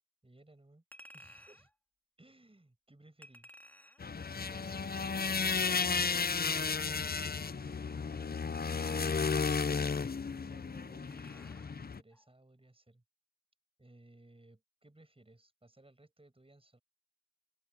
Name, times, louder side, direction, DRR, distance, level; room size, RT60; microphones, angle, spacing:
voice 1, 0.2-0.8 1.1-1.7 2.2-3.5 4.2-9.9 10.4-13.0 13.8-16.8, right 2 dB, 15° right, 6.4 m, -61 dB
Chink clink, 0.9-1.7 3.2-4.1 6.0-6.7 8.5-9.5 11.1-11.7 12.1-12.2, equal, 5° left, 3.6 m, -56 dB
sound 1, 4.0-12.0, left 5 dB, 30° left, 0.6 m, -33 dB
open air
wide cardioid pair, 90°, 32 cm